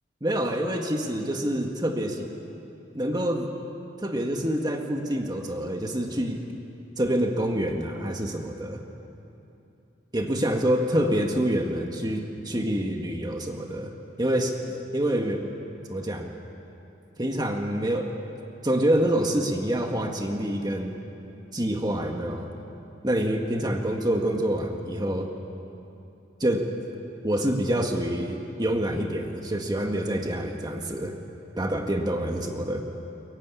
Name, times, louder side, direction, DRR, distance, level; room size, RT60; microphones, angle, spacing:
voice 1, 0.2-2.3 2.9-3.5 4.0-6.4 7.0-8.8 10.1-13.9 14.2-15.5 15.9-16.3 17.2-18.1 18.6-21.0 21.5-22.5 23.0-25.3 26.4-26.7 27.2-31.2 31.6-32.8, right 1 dB, 20° right, 3 dB, 1.8 m, -26 dB
23.0 x 22.5 x 9.8 m, 2.8 s
head